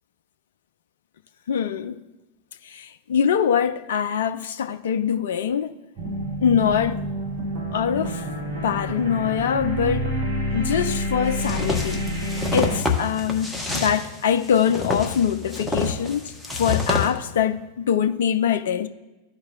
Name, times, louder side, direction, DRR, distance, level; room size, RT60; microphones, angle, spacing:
voice 1, 1.5-2.0 2.6-5.7 6.4-7.0 7.7-8.2 8.6-10.1 10.5-18.9, left 8 dB, 60° left, 0.3 m, -23 dB
sound 1, 6.0-12.8, equal, 55° right, 1.6 m, -28 dB
sound 2, 11.4-17.1, left 3 dB, 5° left, 1.0 m, -27 dB
13.5 x 4.7 x 2.3 m
figure-of-eight pair, 90°, 0 cm